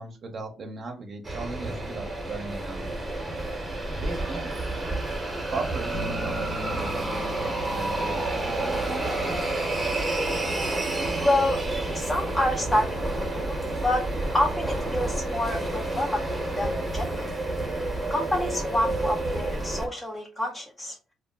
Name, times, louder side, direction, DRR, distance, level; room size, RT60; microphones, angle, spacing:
voice 1, 0.0-2.8 4.0-4.5 5.5-9.3, right 3 dB, 50° right, 3 dB, 0.6 m, -37 dB
sound 1, 1.2-19.9, right 2 dB, 15° right, 0.8 m, -29 dB
Bass guitar, 5.9-15.8, left 2 dB, 90° left, 0.6 m, -42 dB
voice 2, 11.2-11.6 11.9-13.6 13.8-14.1 14.3-17.3 18.1-21.0, left 1 dB, 20° left, 1 dB, 0.5 m, -28 dB
2.3 x 2.0 x 3.5 m, 0.32 s
cardioid pair, 90°, 0 cm